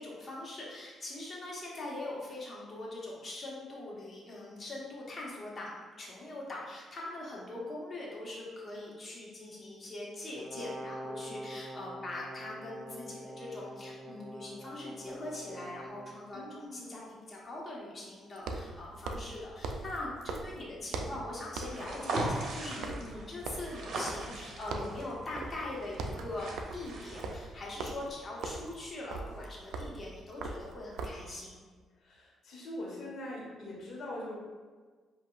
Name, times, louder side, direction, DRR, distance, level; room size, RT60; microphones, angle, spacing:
voice 1, 0.0-17.0 17.3-31.6, left 2 dB, 40° left, -4 dB, 1.3 m, -42 dB
Brass instrument, 10.4-16.2, equal, 20° right, 0.4 m, -45 dB
sound 1, 15.0-15.1 18.4-21.3 21.6-21.9 22.1-24.4 24.7-25.0 25.4-25.6 25.9-31.3, right 3 dB, 85° right, 0.4 m, -40 dB
voice 2, 16.3-16.9 22.6-22.9 31.9-34.4, left 1 dB, 70° left, -3 dB, 1.4 m, -42 dB
sound 2, 21.6-27.3, right 2 dB, 65° right, 0.9 m, -39 dB
7.4 x 2.7 x 2.4 m, 1.5 s
cardioid pair, 90°, 0 cm